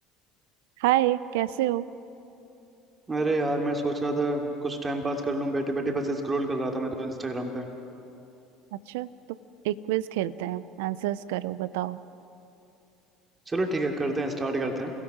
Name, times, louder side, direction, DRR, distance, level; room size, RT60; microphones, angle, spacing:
voice 1, 0.8-1.9 8.7-9.1 9.6-12.0, right 14 dB, 80° right, 17 dB, 0.6 m, -27 dB
voice 2, 3.1-7.7 13.5-14.9, right 2 dB, 25° right, 3 dB, 2.9 m, -28 dB
29.5 x 16.5 x 6.3 m, 2.8 s
hypercardioid pair, 75°, 0 cm